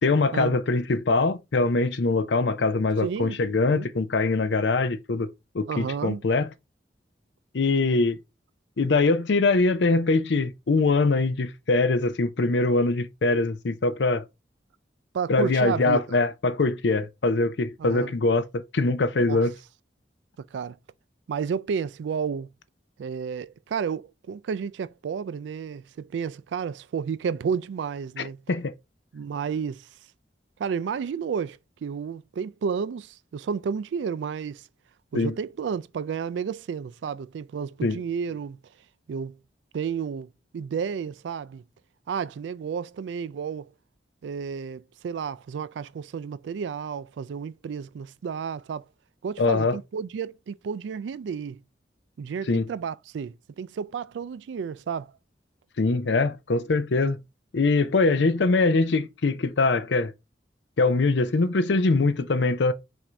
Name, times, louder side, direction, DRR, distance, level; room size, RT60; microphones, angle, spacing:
voice 1, 0.0-5.3 5.5-6.5 7.5-8.2 8.8-14.2 15.3-19.5 28.5-28.7 35.1-35.3 37.8-38.0 49.4-49.8 52.5-52.7 55.8-57.2 57.5-60.1 60.8-62.7, left 3 dB, 80° left, 0.6 m, -23 dB
voice 2, 3.0-3.4 3.7-3.9 5.7-6.2 15.1-16.2 17.8-18.1 19.3-19.5 20.5-20.8 21.3-22.5 23.0-28.4 29.1-29.9 30.6-34.7 35.1-38.6 39.1-39.4 39.7-41.6 42.1-43.7 44.2-48.8 49.2-51.6 52.2-55.1 58.0-58.2, right 6 dB, 85° right, 0.3 m, -31 dB
5.8 x 2.7 x 3.3 m
head